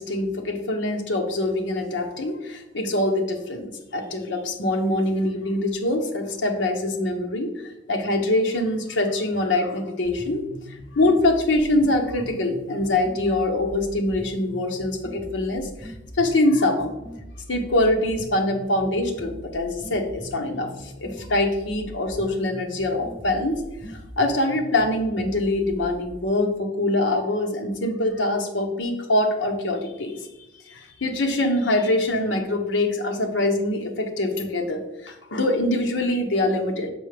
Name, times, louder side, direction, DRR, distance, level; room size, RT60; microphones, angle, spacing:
voice 1, 0.0-7.5 7.9-10.4 11.0-15.9 16.2-16.9 17.5-23.6 24.2-30.2 30.7-36.9, left 1 dB, 80° left, 3 dB, 0.9 m, -24 dB
sound 1, 10.0-26.0, equal, 10° right, 0.6 m, -41 dB
6.2 x 5.4 x 3.4 m, 0.94 s
head